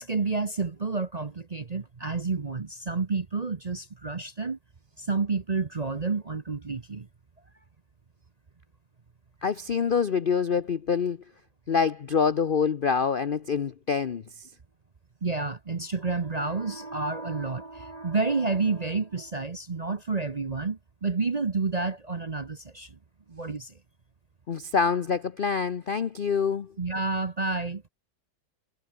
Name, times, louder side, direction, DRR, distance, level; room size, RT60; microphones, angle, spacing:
voice 1, 0.0-4.6 5.0-7.1 15.2-23.0 23.3-23.7 26.8-27.8, right 4 dB, 35° right, 0.7 m, -30 dB
voice 2, 9.4-11.2 11.7-14.5 24.5-26.7, left 6 dB, 50° left, 0.6 m, -26 dB
omnidirectional pair, 1.8 m